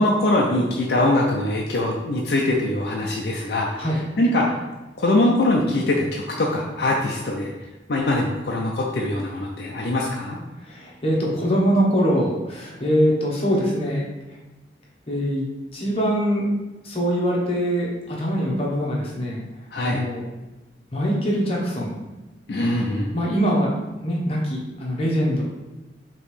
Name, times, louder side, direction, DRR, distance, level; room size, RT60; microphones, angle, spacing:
voice 1, 0.0-3.9 4.2-4.6 5.0-7.5 7.9-10.4 19.7-20.0 22.5-23.1, left 1 dB, 60° left, -2 dB, 0.5 m, -22 dB
voice 2, 10.6-14.1 15.1-15.5 15.7-16.5 16.8-19.4 19.8-20.2 20.9-22.0 23.1-23.7 24.0-25.4, equal, 35° left, -4 dB, 1.0 m, -23 dB
5.1 x 3.0 x 3.2 m, 1.1 s
head